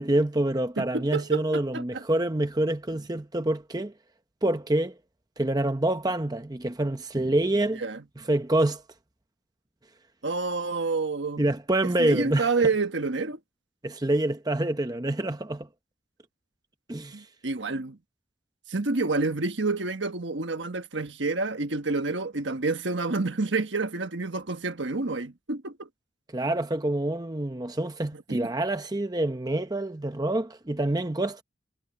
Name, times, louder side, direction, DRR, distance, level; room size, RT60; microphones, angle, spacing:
voice 1, 0.0-3.9 4.4-5.0 5.4-7.8 8.3-8.8 11.4-12.5 13.8-15.7 16.9-17.3 26.3-31.4, right 1 dB, 20° right, 0.8 m, -26 dB
voice 2, 0.8-2.0 7.8-8.0 10.2-11.5 12.0-13.4 17.1-18.0 18.7-25.9 28.1-28.4, right 3 dB, 65° right, 1.4 m, -28 dB
head